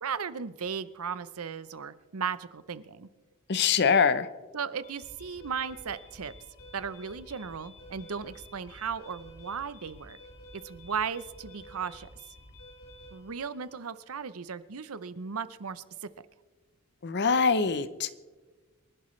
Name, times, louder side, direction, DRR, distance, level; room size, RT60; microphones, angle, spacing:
voice 1, 0.0-3.1 4.5-6.3 6.7-10.2 10.5-12.1 13.1-16.1, right 6 dB, 75° right, 14 dB, 0.7 m, -36 dB
voice 2, 3.5-4.3 17.0-18.1, left 5 dB, 50° left, 14 dB, 0.7 m, -24 dB
sound 1, 4.8-13.8, equal, 70° left, 4.4 m, -51 dB
27.0 x 11.5 x 3.2 m, 1.3 s
head